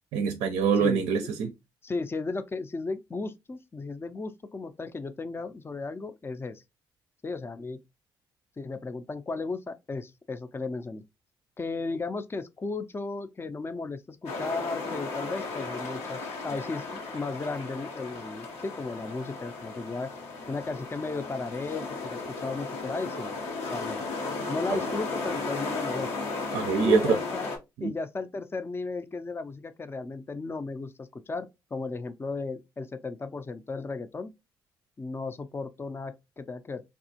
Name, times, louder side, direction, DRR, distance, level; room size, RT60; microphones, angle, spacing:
voice 1, 0.1-1.5 24.7-24.8 26.5-27.2 27.8-27.9, right 6 dB, 70° right, 0.4 m, -24 dB
voice 2, 1.8-6.6 7.2-7.8 8.6-11.0 11.6-20.1 20.5-23.3 23.7-24.0 24.5-26.1 26.8-27.5 27.8-34.3 35.0-36.9, left 3 dB, 20° left, 0.4 m, -35 dB
sound 1, 14.3-27.6, left 3 dB, 75° left, 0.8 m, -35 dB
3.4 x 2.4 x 2.7 m
hypercardioid pair, 45°, 11 cm